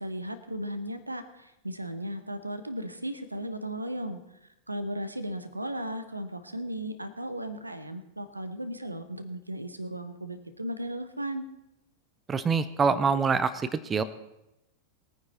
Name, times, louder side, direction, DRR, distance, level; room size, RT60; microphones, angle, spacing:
voice 1, 0.0-4.2 4.7-11.5, equal, 85° right, 10 dB, 1.1 m, -36 dB
voice 2, 12.3-14.0, right 5 dB, 20° right, 14 dB, 0.8 m, -25 dB
20.0 x 9.5 x 4.3 m, 0.87 s
figure-of-eight pair, 90°, 0 cm